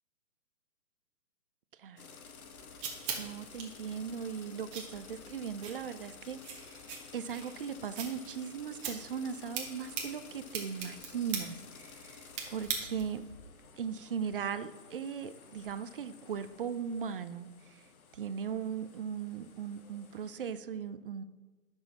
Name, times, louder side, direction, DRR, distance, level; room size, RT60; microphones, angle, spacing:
sound 1, 2.0-20.5, left 5 dB, 80° left, 1.2 m, -53 dB
sound 2, 2.2-13.3, right 6 dB, 20° right, 1.1 m, -43 dB
voice 1, 2.8-13.3 13.8-17.9 18.1-21.2, right 7 dB, 40° right, 12 dB, 0.4 m, -38 dB
10.5 x 6.2 x 4.1 m, 1.3 s
hypercardioid pair, 145°, 42 cm